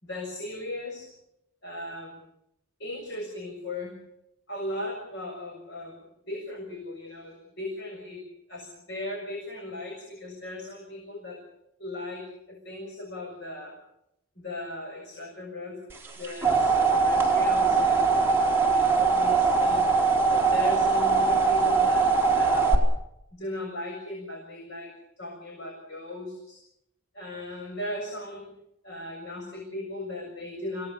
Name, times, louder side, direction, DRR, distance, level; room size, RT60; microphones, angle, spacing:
voice 1, 0.0-1.1 1.6-2.2 2.8-3.9 4.5-6.0 6.3-8.2 8.5-11.4 11.8-13.8 14.4-15.8 16.2-19.9 20.3-22.8 23.3-26.6 27.1-28.5 28.8-30.9, left 1 dB, 55° left, 0 dB, 7.2 m, -37 dB
sound 1, 16.0-22.7, right 4 dB, 10° right, 4.5 m, -22 dB
28.5 x 18.5 x 7.1 m, 0.80 s
head